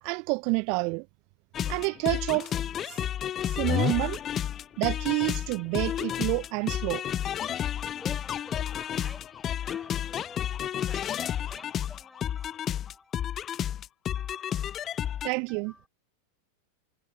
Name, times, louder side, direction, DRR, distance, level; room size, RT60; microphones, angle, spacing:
voice 1, 0.0-1.1 1.6-2.5 2.8-3.1 3.4-4.2 4.8-7.0 15.2-15.7, right 34 dB, 45° right, 0.6 m, -29 dB
sound 1, 1.5-15.3, left 10 dB, 25° left, 0.4 m, -31 dB
voice 2, 7.9-13.5 14.1-15.9, left 2 dB, 5° left, 6.6 m, -51 dB
figure-of-eight pair, 90°, 0 cm